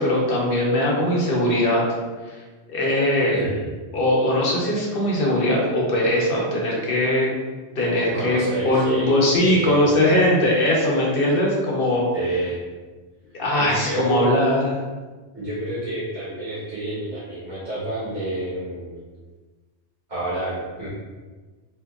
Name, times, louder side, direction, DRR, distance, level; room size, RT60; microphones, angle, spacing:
voice 1, 0.0-1.9 2.3-2.4 2.7-3.4 3.9-7.3 7.8-12.1 13.3-14.8, left 1 dB, 55° left, -3 dB, 0.9 m, -20 dB
voice 2, 3.3-3.7 8.1-9.9 12.1-12.6 13.5-14.3 15.3-19.0 20.1-20.9, right 2 dB, 75° right, -12 dB, 1.5 m, -29 dB
3.7 x 2.7 x 2.3 m, 1.3 s
omnidirectional pair, 1.2 m